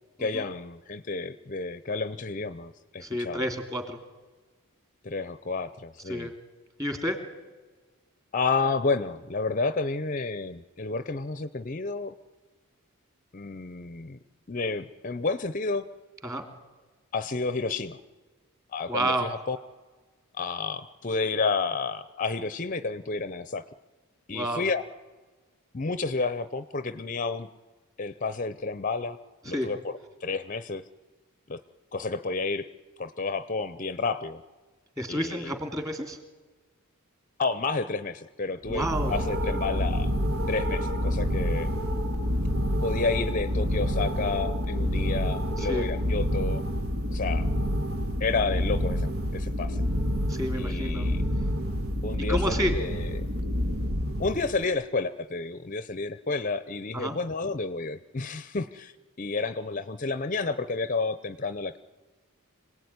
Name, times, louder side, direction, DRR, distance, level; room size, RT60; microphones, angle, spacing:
voice 1, 0.2-3.4 5.0-6.3 8.3-12.1 13.3-14.2 14.5-15.9 17.1-18.0 18.7-19.6 20.3-23.6 24.3-24.8 25.7-27.5 28.0-29.2 29.4-29.9 30.2-30.8 31.5-31.6 31.9-32.7 33.0-34.4 35.1-35.6 37.4-40.1 40.5-41.7 42.8-46.7 47.1-47.5 48.2-49.8 50.6-51.2 52.0-53.3 54.2-58.9 59.2-61.8, left 4 dB, 35° left, 13 dB, 0.7 m, -30 dB
voice 2, 3.0-4.0 6.1-6.3 6.8-7.2 16.2-16.5 18.9-19.3 24.3-24.6 29.5-29.7 35.0-36.2 38.7-39.1 45.6-45.9 50.3-51.1 52.3-52.7 56.9-57.2, equal, 15° right, 6 dB, 2.8 m, -30 dB
sound 1, 38.6-54.6, equal, 70° right, 1.9 m, -28 dB
26.0 x 18.0 x 9.6 m, 1.3 s
head